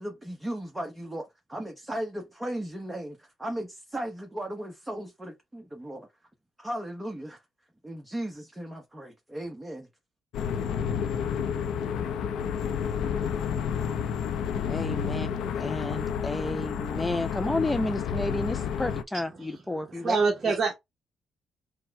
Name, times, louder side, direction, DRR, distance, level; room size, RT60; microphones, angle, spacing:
voice 1, 0.0-6.1 6.6-7.4 7.8-9.9, right 1 dB, 15° right, 1.0 m, -36 dB
sound 1, 10.3-19.0, left 7 dB, 80° left, 0.6 m, -30 dB
voice 2, 14.7-15.3 15.6-20.2, left 2 dB, 10° left, 0.3 m, -31 dB
voice 3, 19.9-20.7, right 4 dB, 40° right, 0.9 m, -25 dB
4.4 x 2.1 x 4.6 m
cardioid pair, 90°, 0 cm